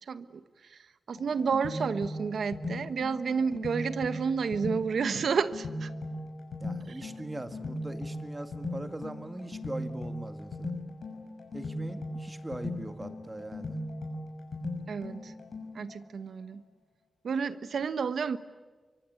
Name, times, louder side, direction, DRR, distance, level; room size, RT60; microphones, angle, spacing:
voice 1, 0.1-5.9 6.9-7.0 14.9-15.3 15.7-16.6 17.2-18.4, right 5 dB, 85° right, 13 dB, 1.2 m, -31 dB
sound 1, 1.2-16.0, left 1 dB, 70° left, 6.0 m, -38 dB
voice 2, 6.6-10.8 11.5-13.8, right 1 dB, 20° right, 8 dB, 2.0 m, -41 dB
25.0 x 24.0 x 9.8 m, 1.4 s
wide cardioid pair, 125°, 0 cm